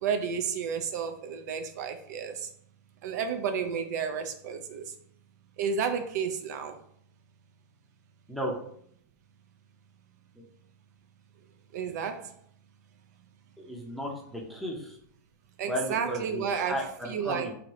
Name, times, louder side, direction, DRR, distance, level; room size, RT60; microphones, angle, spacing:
voice 1, 0.0-2.5 3.0-4.8 5.6-6.8 11.7-12.3 15.6-17.5, right 6 dB, 65° right, 7 dB, 0.4 m, -31 dB
voice 2, 13.6-15.0 15.7-17.5, equal, ahead, -2 dB, 0.5 m, -34 dB
2.7 x 2.6 x 3.0 m, 0.65 s
supercardioid pair, 145°, 10 cm